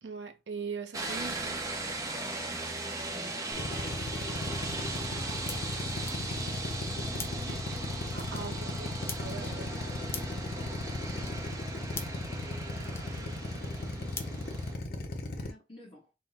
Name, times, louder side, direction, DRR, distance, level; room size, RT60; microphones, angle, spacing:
voice 1, 0.0-1.6 7.4-7.6 8.1-9.8, right 5 dB, 80° right, 0.6 m, -41 dB
sound 1, 0.9-14.7, right 2 dB, 20° right, 0.7 m, -38 dB
Drill, 3.5-15.5, left 2 dB, 55° left, 0.6 m, -36 dB
sound 2, 3.7-15.2, left 4 dB, 15° left, 0.3 m, -48 dB
voice 2, 12.4-16.1, right 1 dB, 30° left, 1.2 m, -54 dB
3.6 x 2.1 x 4.1 m
head